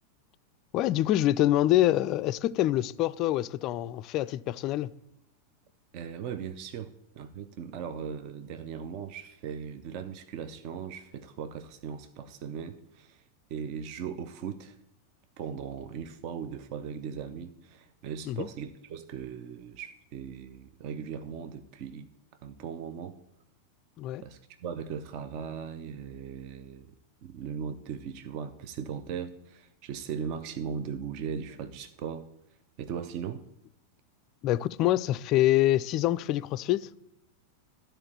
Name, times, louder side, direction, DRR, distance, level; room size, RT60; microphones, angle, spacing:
voice 1, 0.7-4.9 18.3-18.5 24.0-24.2 34.4-36.9, left 14 dB, 40° left, 0.3 m, -25 dB
voice 2, 5.9-13.2 13.5-14.8 15.4-22.1 22.4-23.2 24.2-26.9 27.2-32.3 32.8-33.4, right 7 dB, 45° right, 0.6 m, -38 dB
12.5 x 4.4 x 8.4 m
figure-of-eight pair, 90°, 0 cm